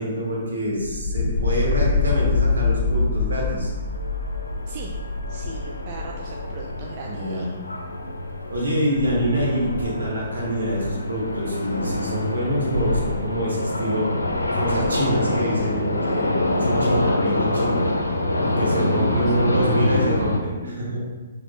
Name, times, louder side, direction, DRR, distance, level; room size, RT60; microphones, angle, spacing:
voice 1, 0.0-3.7 7.1-7.5 8.5-14.1 14.5-17.8 18.4-21.0, equal, 65° right, -4 dB, 1.4 m, -26 dB
sound 1, 0.8-6.8, left 4 dB, 5° left, 1.0 m, -25 dB
sound 2, 1.4-20.4, left 1 dB, 70° left, 0.6 m, -26 dB
voice 2, 4.7-5.0 5.3-7.6 18.7-19.3 19.9-20.9, right 3 dB, 35° right, -1 dB, 0.4 m, -37 dB
6.1 x 3.2 x 2.5 m, 1.3 s
figure-of-eight pair, 125°, 0 cm